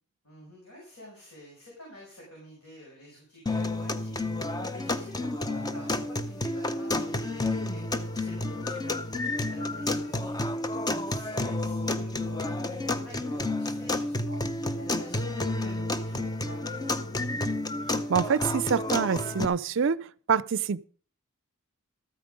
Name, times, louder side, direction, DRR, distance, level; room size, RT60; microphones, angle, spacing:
voice 1, 0.2-17.4, left 1 dB, 80° left, 5.6 m, -49 dB
sound 1, 3.5-19.5, left 2 dB, 15° left, 0.6 m, -30 dB
voice 2, 18.1-20.9, right 6 dB, 55° right, 0.4 m, -26 dB
13.5 x 9.0 x 5.2 m
head